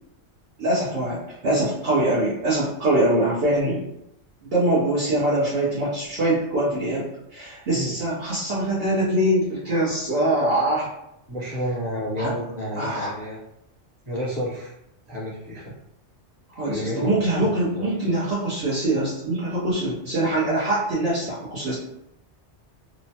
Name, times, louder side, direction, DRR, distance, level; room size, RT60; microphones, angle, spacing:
voice 1, 0.6-3.8 4.4-10.9 12.2-12.3 12.8-13.1 16.5-21.7, right 1 dB, 60° right, -9 dB, 1.0 m, -23 dB
voice 2, 11.3-13.4 14.0-14.7 15.1-15.7 16.6-17.9, equal, 40° right, -7 dB, 1.2 m, -30 dB
3.0 x 2.1 x 2.8 m, 0.82 s
omnidirectional pair, 1.2 m